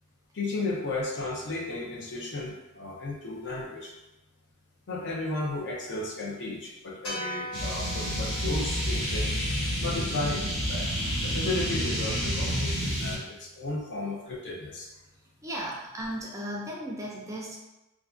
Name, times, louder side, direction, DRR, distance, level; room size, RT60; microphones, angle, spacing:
voice 1, 0.3-3.9 4.9-9.4 9.8-10.9 11.2-14.9, left 2 dB, 55° left, -3 dB, 0.6 m, -34 dB
sound 1, 7.0-11.4, equal, 80° left, 1.1 m, -41 dB
sound 2, 7.5-13.1, equal, 20° left, 1.3 m, -29 dB
voice 2, 15.4-17.6, equal, 15° right, -3 dB, 0.3 m, -35 dB
2.4 x 2.3 x 2.4 m, 1.0 s
head